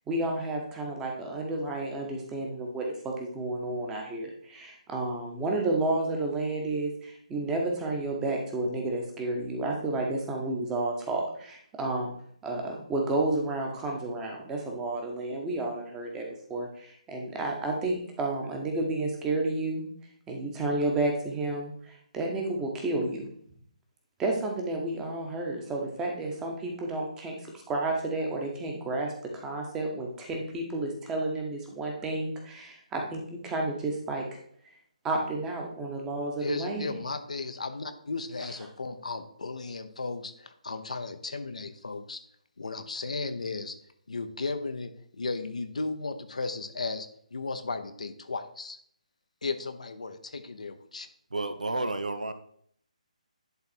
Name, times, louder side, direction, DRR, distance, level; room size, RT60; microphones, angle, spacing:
voice 1, 0.1-12.1 12.4-19.9 20.3-23.2 24.2-27.3 27.7-34.2 35.0-36.9, right 2 dB, 10° right, 1 dB, 1.3 m, -31 dB
voice 2, 36.4-42.2 42.6-43.8 44.1-48.8 49.4-50.1 50.6-51.1, left 3 dB, 60° left, 8 dB, 0.8 m, -35 dB
voice 3, 51.3-52.3, right 2 dB, 70° right, 10 dB, 0.8 m, -31 dB
10.5 x 3.9 x 4.4 m, 0.64 s
figure-of-eight pair, 145°, 4 cm